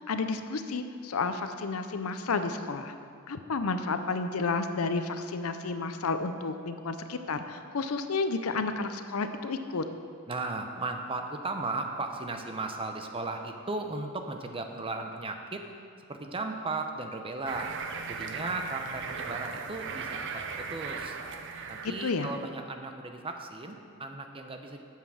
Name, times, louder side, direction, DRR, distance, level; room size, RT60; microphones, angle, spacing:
voice 1, 0.0-2.9 3.3-9.8 22.0-22.3, left 4 dB, 75° left, 9 dB, 0.6 m, -31 dB
voice 2, 10.3-15.7 16.1-17.7 18.1-21.2 21.7-24.8, right 3 dB, 25° right, 5 dB, 0.7 m, -36 dB
sound 1, 17.5-22.5, right 5 dB, 60° right, 0.7 m, -38 dB
8.9 x 7.4 x 6.2 m, 2.2 s
head